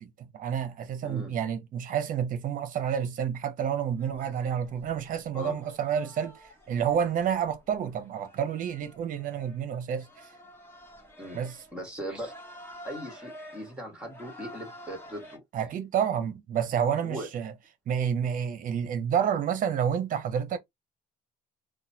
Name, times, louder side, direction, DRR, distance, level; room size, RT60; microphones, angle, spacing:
voice 1, 0.0-6.4 6.7-10.1 11.3-11.6 15.5-17.5 17.9-20.6, right 8 dB, 55° right, 0.7 m, -29 dB
sound 1, 4.0-15.4, equal, 15° left, 1.1 m, -50 dB
voice 2, 11.7-12.3 12.8-15.4 17.0-17.3, equal, 5° right, 1.6 m, -39 dB
2.9 x 2.2 x 2.7 m
cardioid pair, 110°, 17 cm